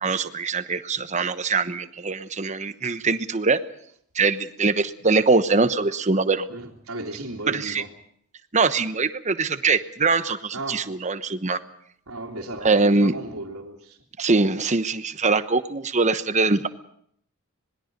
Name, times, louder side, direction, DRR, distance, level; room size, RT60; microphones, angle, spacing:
voice 1, 0.0-3.6 4.1-6.5 7.5-7.8 8.5-11.6 12.6-13.1 14.2-16.7, right 3 dB, 35° right, 11 dB, 1.0 m, -22 dB
voice 2, 6.5-7.9 10.5-10.8 12.1-14.0, right 2 dB, 80° right, -6 dB, 2.6 m, -35 dB
26.0 x 20.5 x 5.3 m, 0.65 s
head